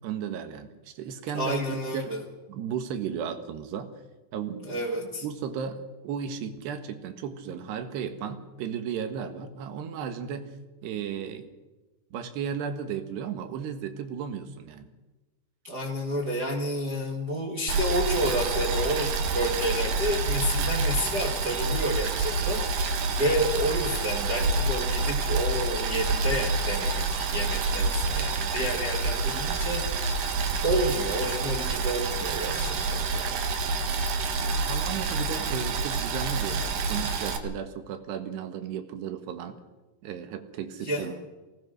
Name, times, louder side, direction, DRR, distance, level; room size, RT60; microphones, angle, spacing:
voice 1, 0.0-2.2 2.5-3.9 4.3-4.8 5.2-10.5 10.8-11.5 12.1-14.9 34.4-39.6 40.0-41.1, right 7 dB, 80° right, 8 dB, 3.6 m, -35 dB
voice 2, 1.3-2.2 4.7-5.2 15.6-22.9 23.2-30.1 30.6-33.3 40.8-41.1, equal, 35° right, -1 dB, 1.7 m, -30 dB
Boiling, 17.7-37.4, right 3 dB, 65° right, 3.0 m, -28 dB
23.0 x 18.5 x 6.5 m, 1.1 s
omnidirectional pair, 4.7 m